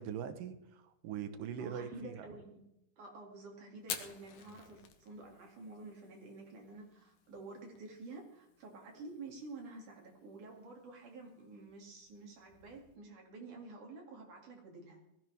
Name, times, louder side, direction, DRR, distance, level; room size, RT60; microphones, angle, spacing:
voice 1, 0.0-2.3, right 8 dB, 85° right, 9 dB, 2.8 m, -42 dB
voice 2, 1.6-2.6 3.0-15.0, right 3 dB, 70° right, 0 dB, 4.0 m, -50 dB
Fire, 3.8-13.0, left 9 dB, 80° left, 2.9 m, -52 dB
19.5 x 14.0 x 3.5 m, 0.83 s
omnidirectional pair, 3.8 m